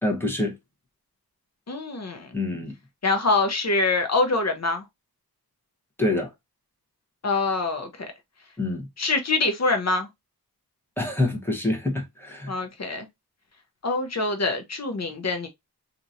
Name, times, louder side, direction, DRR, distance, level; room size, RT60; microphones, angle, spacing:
voice 1, 0.0-0.6 2.3-2.7 6.0-6.3 8.6-8.9 11.0-12.6, left 2 dB, 5° left, 1.1 m, -26 dB
voice 2, 1.7-2.3 3.0-4.8 7.2-8.1 9.0-10.1 12.5-13.1 13.8-15.5, left 3 dB, 45° left, 0.8 m, -25 dB
2.9 x 2.6 x 2.6 m
wide cardioid pair, 85°, 38 cm